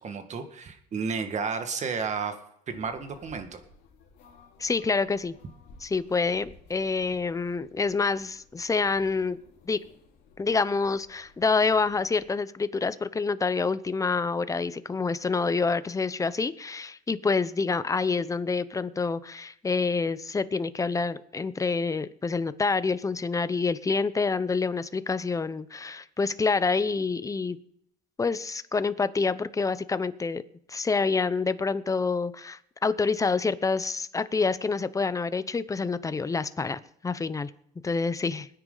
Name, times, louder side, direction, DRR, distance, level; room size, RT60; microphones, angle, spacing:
voice 1, 0.0-2.4 2.7-3.6, right 5 dB, 45° right, 7 dB, 1.9 m, -32 dB
sound 1, 2.7-12.3, left 4 dB, 75° left, 3.9 m, -56 dB
voice 2, 4.6-5.3 5.8-9.4 9.7-9.8 10.4-27.6 28.2-30.4 30.7-37.5 37.8-38.5, left 4 dB, 20° left, 14 dB, 0.7 m, -27 dB
21.5 x 9.7 x 4.0 m, 0.71 s
cardioid pair, 110°, 17 cm